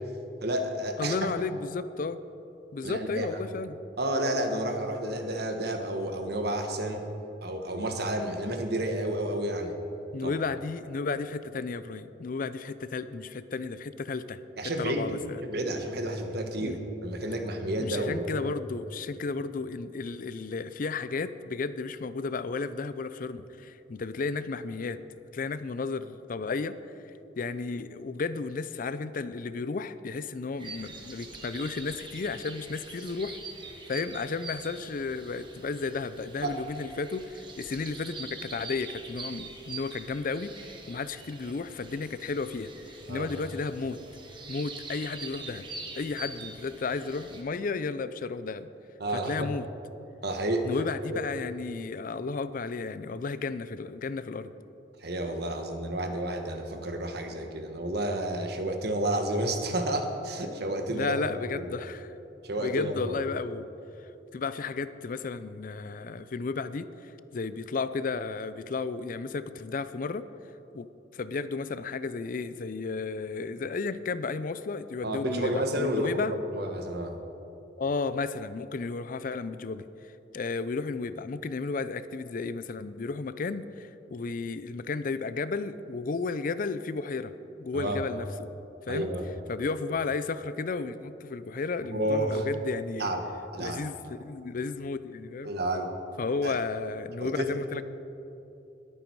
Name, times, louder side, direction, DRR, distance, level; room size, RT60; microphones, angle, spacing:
voice 1, 0.4-1.1 2.8-3.3 4.0-7.0 7.4-9.7 10.2-10.3 14.6-15.2 15.4-18.5 36.4-36.5 43.1-43.3 49.0-49.5 50.2-50.7 51.1-51.2 55.0-61.3 61.5-61.6 62.4-63.1 75.0-77.1 87.7-88.0 88.9-89.3 91.9-92.4 93.0-93.2 93.5-93.8 95.4-95.9 96.4-96.5 97.2-97.6, right 1 dB, 55° right, 5 dB, 1.4 m, -30 dB
voice 2, 1.0-2.2 2.7-3.8 10.1-15.4 16.6-16.8 17.8-25.0 25.3-26.8 27.4-33.4 33.9-44.0 44.5-45.6 45.9-48.7 49.1-49.7 50.6-54.5 60.9-62.1 62.6-63.7 64.3-70.3 70.7-76.4 77.8-79.9 80.3-87.3 87.6-88.5 88.9-89.1 89.5-93.1 93.6-95.5 96.2-97.8, left 4 dB, 45° left, 14 dB, 0.4 m, -33 dB
sound 1, 30.6-47.4, right 3 dB, 25° right, 1.3 m, -44 dB
21.0 x 9.0 x 4.6 m, 2.9 s
head